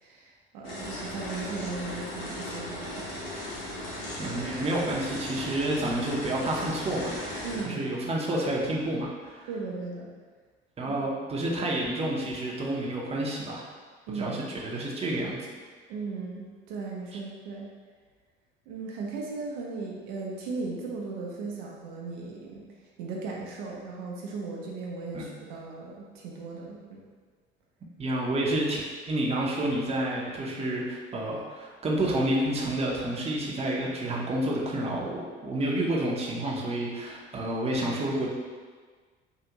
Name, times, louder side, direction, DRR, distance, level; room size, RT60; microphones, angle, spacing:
voice 1, 0.0-3.1 7.4-7.8 9.5-10.1 10.8-10.9 14.1-14.6 15.9-17.7 18.7-22.7 23.0-27.0, right 4 dB, 65° right, -3 dB, 0.7 m, -37 dB
sound 1, 0.6-7.6, left 1 dB, 80° left, 1.0 m, -37 dB
voice 2, 4.2-7.1 7.6-9.5 10.8-13.6 14.1-15.4 17.1-17.2 25.1-25.2 28.0-38.3, right 1 dB, 20° right, -3 dB, 0.7 m, -29 dB
3.6 x 2.4 x 2.9 m, 1.5 s
hypercardioid pair, 65°, 30 cm